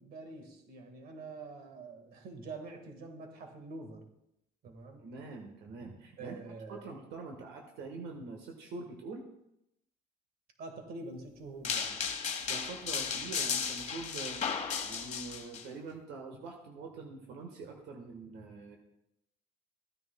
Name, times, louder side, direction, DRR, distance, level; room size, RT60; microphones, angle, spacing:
voice 1, 0.0-4.1 4.6-5.1 6.2-6.8 10.6-12.1, right 3 dB, 65° right, 5 dB, 1.7 m, -46 dB
voice 2, 5.0-9.3 12.5-14.4 14.8-18.8, right 3 dB, 85° right, 2 dB, 1.3 m, -45 dB
sound 1, 11.6-15.6, left 6 dB, 45° left, 1.2 m, -35 dB
15.0 x 9.8 x 2.2 m, 0.83 s
cardioid pair, 110°, 17 cm